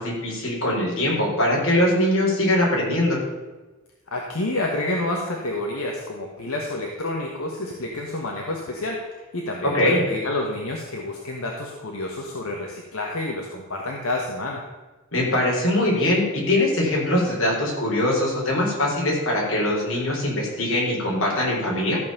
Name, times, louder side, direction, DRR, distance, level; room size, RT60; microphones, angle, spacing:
voice 1, 0.0-3.2 9.6-10.0 15.1-22.0, left 1 dB, 65° left, -3 dB, 4.1 m, -22 dB
voice 2, 4.1-14.6, left 2 dB, 85° left, 0 dB, 1.5 m, -29 dB
14.0 x 5.6 x 6.8 m, 1.2 s
head